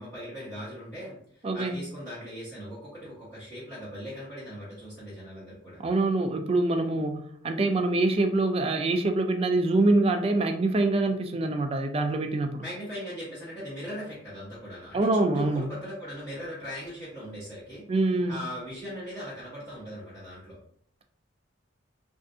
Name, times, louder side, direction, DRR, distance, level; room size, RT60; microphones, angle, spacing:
voice 1, 0.0-5.8 12.6-17.8 18.3-20.6, equal, 5° left, -13 dB, 1.2 m, -39 dB
voice 2, 1.4-1.8 5.8-12.6 14.9-15.7 17.9-18.4, right 2 dB, 30° right, 5 dB, 0.3 m, -25 dB
3.5 x 2.4 x 2.6 m, 0.64 s
head